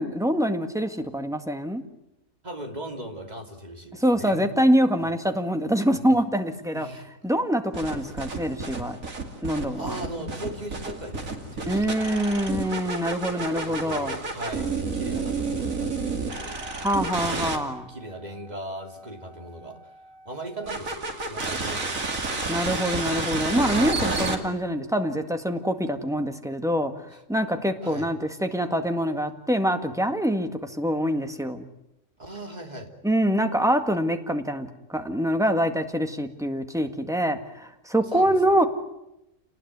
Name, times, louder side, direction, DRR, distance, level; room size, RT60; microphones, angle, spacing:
voice 1, 0.0-1.8 3.9-6.9 7.2-9.0 9.4-10.0 11.7-14.1 16.8-17.9 22.5-26.9 27.3-31.7 33.0-38.6, equal, ahead, 6 dB, 1.8 m, -25 dB
voice 2, 2.4-4.5 5.8-6.1 6.7-7.1 9.7-12.1 13.3-16.6 17.1-17.5 17.9-19.8 20.2-22.3 27.1-27.2 27.8-28.1 32.2-32.9 38.0-38.6, right 1 dB, 30° right, 4 dB, 3.0 m, -38 dB
sound 1, 7.7-17.6 20.7-24.4, right 3 dB, 70° right, 3.0 m, -30 dB
28.5 x 19.5 x 9.5 m, 0.89 s
omnidirectional pair, 1.5 m